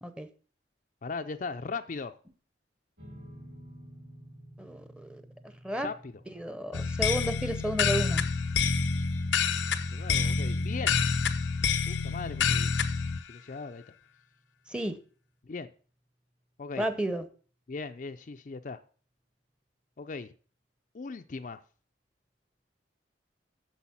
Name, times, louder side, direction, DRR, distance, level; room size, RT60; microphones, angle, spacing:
voice 1, 1.0-2.2 5.8-6.1 9.9-11.0 11.9-12.7 13.3-13.8 15.4-15.7 16.6-16.9 17.7-18.8 20.0-20.3 20.9-21.6, left 4 dB, 45° left, 0.4 m, -38 dB
sound 1, 3.0-15.5, right 1 dB, 50° right, 3.3 m, -54 dB
voice 2, 4.6-5.2 5.6-5.9 6.3-8.2 14.7-15.0 16.8-17.3, right 1 dB, 5° right, 0.7 m, -32 dB
sound 2, 6.7-13.2, left 5 dB, 80° left, 0.6 m, -28 dB
8.3 x 6.9 x 5.7 m
head